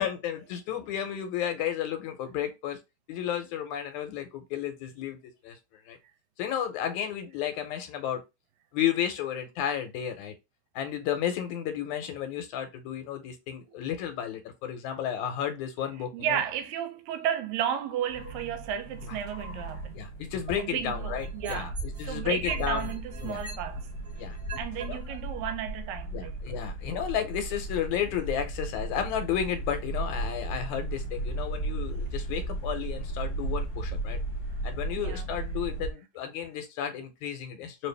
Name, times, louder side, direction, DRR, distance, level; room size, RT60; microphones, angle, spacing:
voice 1, 0.0-2.8 3.1-5.2 5.4-5.6 5.9-6.0 6.4-8.2 8.7-10.3 10.8-16.4 19.0-19.2 20.0-22.9 23.2-23.4 24.2-24.4 24.8-25.0 26.1-34.2 34.6-37.9, left 9 dB, 80° left, 2.1 m, -32 dB
voice 2, 16.1-20.0 20.6-21.8 22.0-23.9 24.6-26.3 35.0-35.3, right 9 dB, 80° right, 1.9 m, -33 dB
sound 1, 18.1-35.9, right 2 dB, 50° left, 1.2 m, -35 dB
sound 2, 20.5-22.1 22.4-24.8 25.5-25.6, right 2 dB, 35° right, 1.2 m, -38 dB
4.5 x 2.5 x 3.2 m
omnidirectional pair, 3.4 m